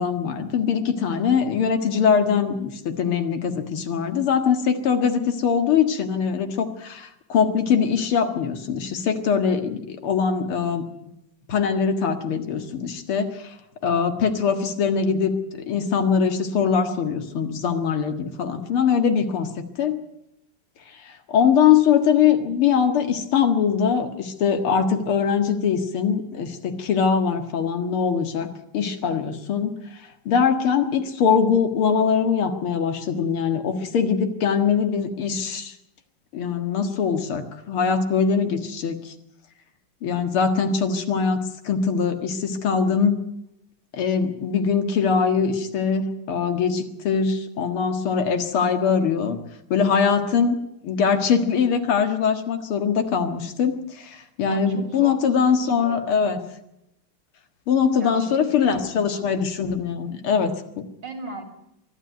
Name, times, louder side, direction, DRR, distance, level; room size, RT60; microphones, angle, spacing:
voice 1, 0.0-10.8 11.5-13.5 13.8-20.0 20.9-28.5 28.7-35.7 36.3-39.1 40.0-43.2 43.9-49.4 49.7-56.4 57.7-60.9, left 6 dB, 85° left, 7 dB, 2.7 m, -22 dB
voice 2, 54.4-56.4 57.9-59.4 61.0-61.4, right 3 dB, 55° right, 5 dB, 3.7 m, -39 dB
23.5 x 12.5 x 9.4 m, 0.82 s
omnidirectional pair, 2.3 m